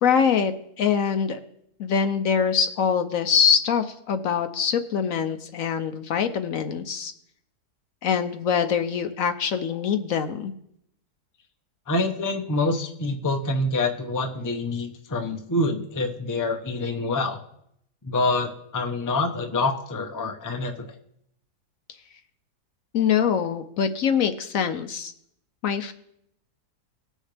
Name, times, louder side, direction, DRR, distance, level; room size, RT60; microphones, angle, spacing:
voice 1, 0.0-0.5 0.8-1.4 1.8-7.1 8.0-10.5 22.9-25.1 25.6-25.9, left 7 dB, 65° left, 8 dB, 1.0 m, -24 dB
voice 2, 11.9-17.4 18.0-20.9, left 2 dB, 20° left, 3 dB, 0.6 m, -26 dB
19.0 x 6.4 x 3.3 m, 0.73 s
omnidirectional pair, 1.7 m